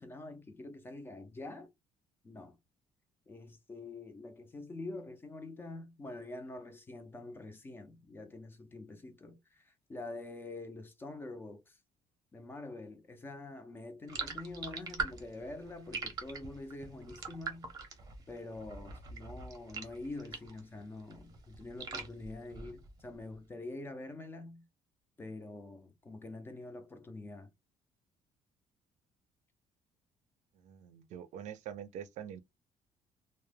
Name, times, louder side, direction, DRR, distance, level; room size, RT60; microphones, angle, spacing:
voice 1, 0.0-1.7 2.2-2.6 3.3-11.8 12.3-17.7 18.3-24.7 25.2-27.5, left 2 dB, 15° left, 0.4 m, -46 dB
sound 1, 14.1-20.7 21.0-23.1, right 4 dB, 30° right, 0.6 m, -42 dB
voice 2, 30.6-32.4, right 9 dB, 70° right, 0.5 m, -45 dB
2.1 x 2.0 x 3.2 m
cardioid pair, 170°, 13 cm